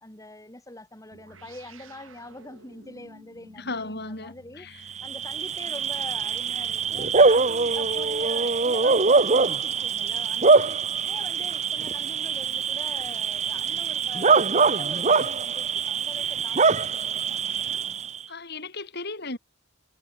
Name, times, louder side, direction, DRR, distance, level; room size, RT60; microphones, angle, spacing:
voice 1, 0.0-4.7 5.0-18.1, left 2 dB, 15° left, 3.2 m, -44 dB
sound 1, 1.1-9.9, right 2 dB, 85° right, 6.2 m, -53 dB
voice 2, 3.6-4.8 18.3-19.4, left 3 dB, 55° left, 5.6 m, -35 dB
Bark / Cricket, 4.9-18.2, right 4 dB, 35° right, 1.2 m, -23 dB
head